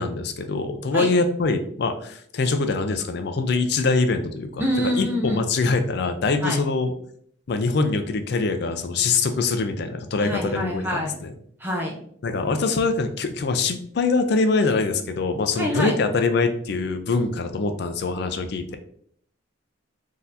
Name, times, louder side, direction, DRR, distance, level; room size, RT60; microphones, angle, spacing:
voice 1, 0.0-6.9 7.5-11.3 12.2-18.8, left 3 dB, 55° left, 7 dB, 0.4 m, -24 dB
voice 2, 4.6-5.4 6.4-6.6 10.2-11.1 11.6-12.0 15.6-16.0, equal, 10° right, -1 dB, 0.5 m, -26 dB
3.9 x 2.7 x 2.5 m, 0.63 s
head